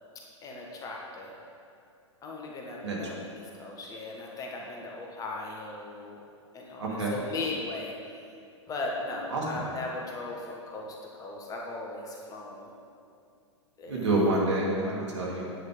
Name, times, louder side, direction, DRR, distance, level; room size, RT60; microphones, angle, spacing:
voice 1, 0.4-1.3 2.2-6.2 6.5-7.9 8.7-12.7 13.8-14.1, left 2 dB, 20° left, -1 dB, 1.3 m, -38 dB
voice 2, 6.8-7.1 9.3-9.4 13.9-15.5, right 2 dB, 65° right, -3 dB, 2.7 m, -27 dB
9.6 x 8.5 x 5.1 m, 2.4 s
figure-of-eight pair, 100°, 16 cm